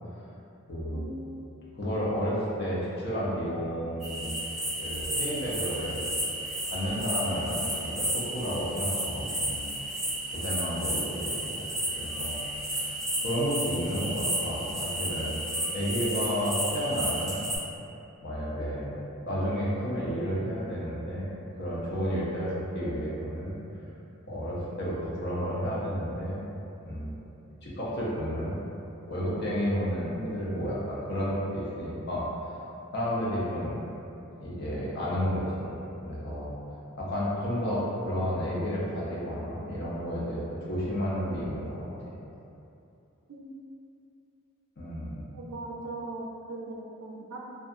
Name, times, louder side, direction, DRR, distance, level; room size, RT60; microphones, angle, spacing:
voice 1, 0.7-1.1 1.8-4.4 4.8-6.1 6.6-9.8 10.3-11.6 11.9-15.4 15.7-17.5 18.2-18.9 19.2-23.6 24.2-26.5 26.8-27.3 27.6-28.6 29.1-32.3 32.9-33.8 34.4-35.8 36.0-36.6 37.0-41.9 44.8-45.3, equal, 50° left, -7 dB, 0.6 m, -31 dB
sound 1, 4.0-17.6, right 1 dB, ahead, 0.6 m, -32 dB
voice 2, 45.3-47.4, right 2 dB, 85° right, -1 dB, 0.4 m, -39 dB
2.7 x 2.3 x 2.4 m, 2.8 s
head